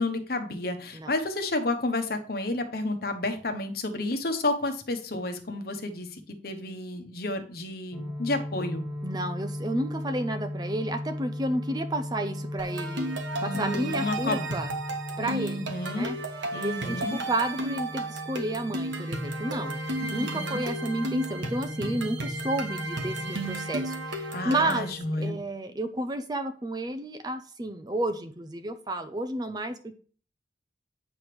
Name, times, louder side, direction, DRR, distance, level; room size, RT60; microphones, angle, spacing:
voice 1, 0.0-8.8 13.4-14.5 15.2-16.1 16.5-17.2 20.0-20.6 24.3-25.4, left 2 dB, 55° left, 7 dB, 1.1 m, -31 dB
sound 1, 7.9-25.2, left 1 dB, 5° right, 1.3 m, -37 dB
voice 2, 9.0-13.1 13.4-14.7 15.2-15.6 15.9-16.2 16.5-19.8 20.1-24.9 25.2-29.9, right 1 dB, 20° right, 9 dB, 0.5 m, -31 dB
sound 2, 12.6-24.9, right 2 dB, 85° right, 1.4 m, -34 dB
8.8 x 3.4 x 6.0 m, 0.41 s
head